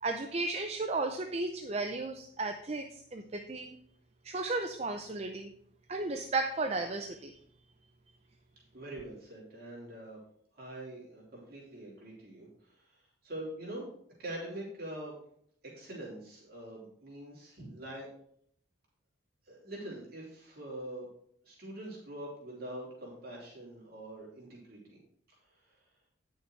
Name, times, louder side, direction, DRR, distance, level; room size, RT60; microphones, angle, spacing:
voice 1, 0.0-3.7 4.2-5.5 5.9-7.3, right 3 dB, 30° right, 5 dB, 0.5 m, -34 dB
voice 2, 8.7-10.2 10.5-13.9 14.2-15.1 15.7-18.1 19.5-21.1 21.4-25.0 25.5-25.8, right 1 dB, 50° right, -5 dB, 3.3 m, -44 dB
9.7 x 6.5 x 4.6 m, 0.65 s
head